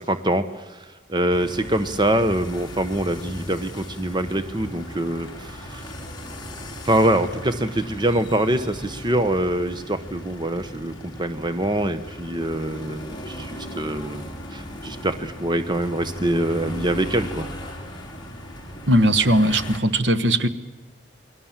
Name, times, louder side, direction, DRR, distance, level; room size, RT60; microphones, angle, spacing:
voice 1, 0.0-5.9 6.8-17.5, right 1 dB, 25° right, 10 dB, 1.0 m, -24 dB
sound 1, 1.3-19.8, equal, 25° left, 3.9 m, -37 dB
voice 2, 18.9-20.5, right 1 dB, 65° right, 12 dB, 1.3 m, -19 dB
28.5 x 22.5 x 7.4 m, 1.2 s
head